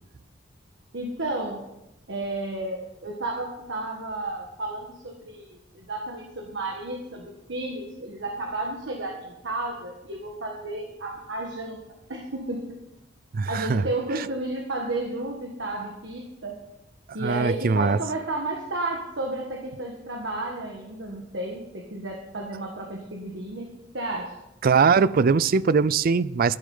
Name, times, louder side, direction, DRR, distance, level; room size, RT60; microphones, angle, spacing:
voice 1, 0.9-1.6 2.1-11.8 12.1-12.7 13.5-16.6 17.1-23.7 23.9-24.3, right 2 dB, 70° right, 1 dB, 1.6 m, -32 dB
voice 2, 13.3-13.8 14.1-14.3 17.2-18.0 24.6-26.6, right 5 dB, 50° right, 18 dB, 0.4 m, -21 dB
12.0 x 11.0 x 5.5 m, 0.91 s
head